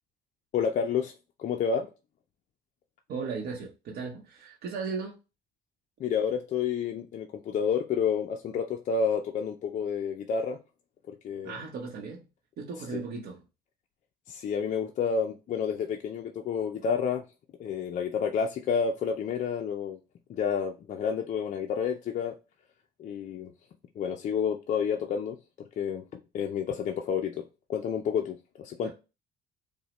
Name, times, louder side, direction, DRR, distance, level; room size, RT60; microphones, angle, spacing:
voice 1, 0.5-1.1 1.4-1.9 6.0-10.6 11.1-11.6 12.9-13.0 14.3-17.2 17.6-20.0 20.3-22.3 23.0-23.5 24.0-25.4 25.8-27.4 27.7-28.9, left 6 dB, 45° left, 0.4 m, -30 dB
voice 2, 3.1-5.1 11.4-12.2 12.6-13.4 28.8-28.9, right 5 dB, 70° right, 0.8 m, -36 dB
5.0 x 2.1 x 2.9 m
cardioid pair, 110°, 17 cm